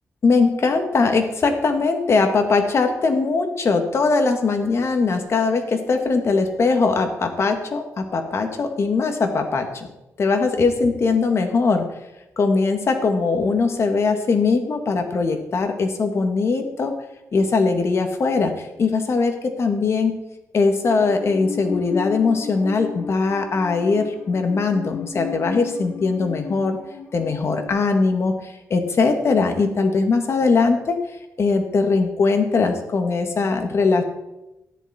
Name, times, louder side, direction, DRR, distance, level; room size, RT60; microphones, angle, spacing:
voice 1, 0.2-9.9 10.2-11.8 12.4-16.9 17.3-20.2 20.5-26.8 27.1-31.0 31.4-34.0, left 4 dB, 50° left, 6 dB, 1.7 m, -20 dB
Musical instrument, 20.8-27.7, left 6 dB, 75° left, 2.6 m, -34 dB
13.5 x 10.5 x 4.3 m, 0.95 s
cardioid pair, 110°, 6 cm